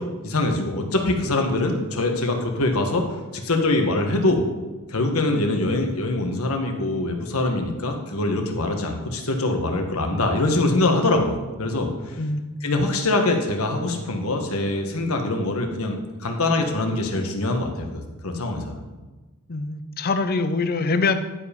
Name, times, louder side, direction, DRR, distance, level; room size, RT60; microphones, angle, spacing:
voice 1, 0.2-3.0 3.3-4.4 4.9-12.2 12.6-18.8, left 2 dB, 75° left, 3 dB, 1.4 m, -23 dB
voice 2, 12.2-12.6 19.5-21.1, left 4 dB, 45° left, 10 dB, 0.6 m, -24 dB
10.5 x 4.9 x 5.2 m, 1.2 s
head